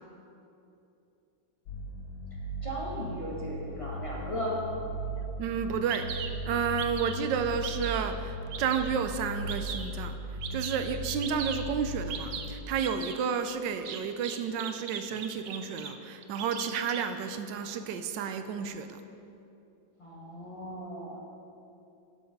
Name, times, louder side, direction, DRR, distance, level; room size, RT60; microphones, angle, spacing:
sound 1, 1.7-12.6, equal, 75° left, 1.4 m, -38 dB
voice 1, 2.6-4.6 20.0-21.2, equal, 20° left, -5 dB, 1.6 m, -36 dB
Bird vocalization bird call bird song, 5.4-5.5 5.9-6.3 6.8-7.2 7.6-8.0 8.5-8.9 9.5-9.9 10.4-10.8 11.2-11.6 12.1-12.5 12.8-13.2 13.8-15.9 16.2-17.0, right 7 dB, 60° right, 0.8 m, -38 dB
voice 2, 5.4-10.2 10.5-19.0, right 6 dB, 80° right, 8 dB, 1.3 m, -31 dB
11.5 x 6.3 x 5.2 m, 2.8 s
omnidirectional pair, 1.9 m